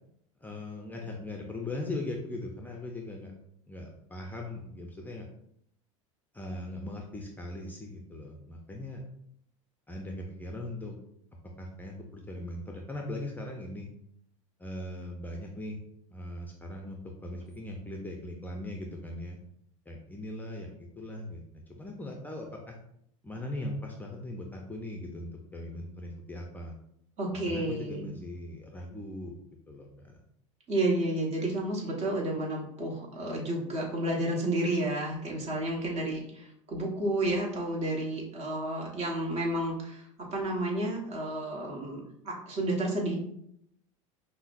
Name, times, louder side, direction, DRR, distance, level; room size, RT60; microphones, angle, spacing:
voice 1, 0.4-3.3 3.7-5.3 6.3-9.0 9.9-11.0 11.6-13.9 14.6-15.8 16.1-19.4 19.9-22.8 23.2-26.7 27.5-29.3 29.7-30.2, left 1 dB, 10° left, 0 dB, 0.5 m, -39 dB
voice 2, 27.2-28.0 30.7-43.2, right 1 dB, 40° right, -1 dB, 1.2 m, -31 dB
5.4 x 2.1 x 2.5 m, 0.71 s
hypercardioid pair, 90°, 17 cm